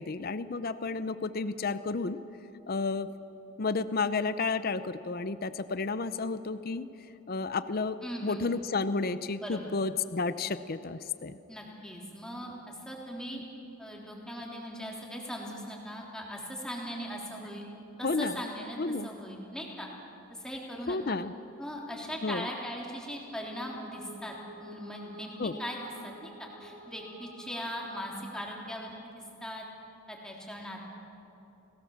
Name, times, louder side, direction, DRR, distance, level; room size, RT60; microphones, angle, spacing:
voice 1, 0.0-2.2 2.7-3.1 3.6-6.9 7.3-11.4 18.0-18.4 18.8-19.1 20.9-21.3 22.2-22.5 25.4-25.6, left 4 dB, 45° left, 13 dB, 0.6 m, -31 dB
voice 2, 8.0-8.5 9.4-9.7 11.5-13.4 13.8-17.7 18.0-18.8 19.0-19.9 20.3-21.2 21.6-29.1 29.4-29.6 30.1-30.8, equal, 5° left, -2 dB, 3.5 m, -39 dB
sound 1, 23.2-29.0, right 2 dB, 35° right, 2.2 m, -50 dB
30.0 x 18.5 x 7.2 m, 3.0 s
head